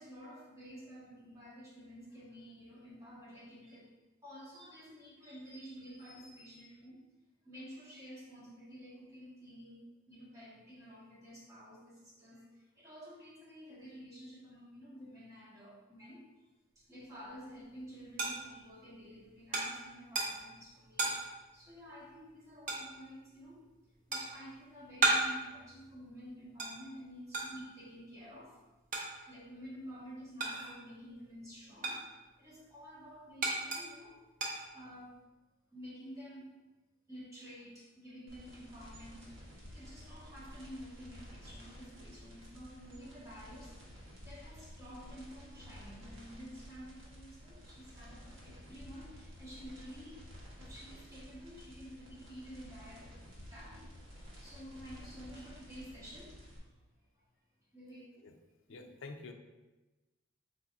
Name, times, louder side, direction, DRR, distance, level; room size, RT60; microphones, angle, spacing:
voice 1, 0.0-3.9 4.2-7.0 7.4-16.3 16.8-21.2 21.5-23.6 24.1-28.6 29.2-32.1 32.4-34.2 34.7-35.2 35.7-36.5 37.1-43.7 44.2-50.2 50.6-53.1 53.5-53.9 54.4-56.8 57.1-57.2 57.7-58.1 58.7-58.9, equal, 15° right, -7 dB, 1.0 m, -51 dB
sound 1, 17.2-31.0 31.3-35.2, right 3 dB, 40° right, 0.6 m, -37 dB
sound 2, 38.3-56.6, equal, 65° right, 1.1 m, -52 dB
voice 2, 58.7-59.3, left 3 dB, 65° left, 5 dB, 0.4 m, -47 dB
4.1 x 3.9 x 2.4 m, 1.1 s
head